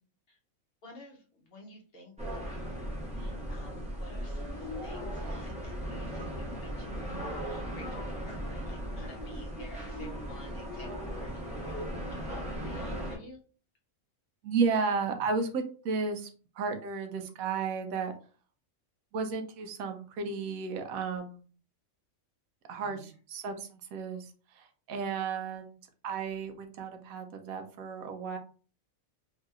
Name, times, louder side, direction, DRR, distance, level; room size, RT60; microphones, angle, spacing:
voice 1, 0.8-13.4 22.8-23.1, left 2 dB, 50° left, 0 dB, 0.8 m, -52 dB
sound 1, 2.2-13.2, equal, 5° right, 0.6 m, -37 dB
voice 2, 14.4-16.3 16.6-18.1 19.1-21.5 22.7-25.8 26.0-28.4, right 5 dB, 85° right, 6 dB, 1.0 m, -33 dB
3.1 x 2.8 x 2.4 m, 0.39 s
omnidirectional pair, 1.4 m